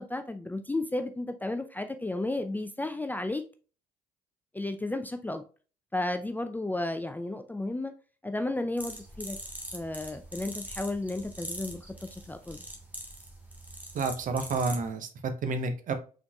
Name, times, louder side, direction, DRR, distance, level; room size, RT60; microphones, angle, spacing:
voice 1, 0.0-3.4 4.5-5.4 5.9-7.9 8.2-9.4 9.7-11.8 12.1-12.6, left 2 dB, 10° left, 7 dB, 0.5 m, -33 dB
sound 1, 8.8-14.9, right 1 dB, 10° right, 1.5 m, -42 dB
voice 2, 13.9-15.9, right 3 dB, 45° right, 8 dB, 0.9 m, -30 dB
5.8 x 3.8 x 2.3 m, 0.37 s
figure-of-eight pair, 50°, 19 cm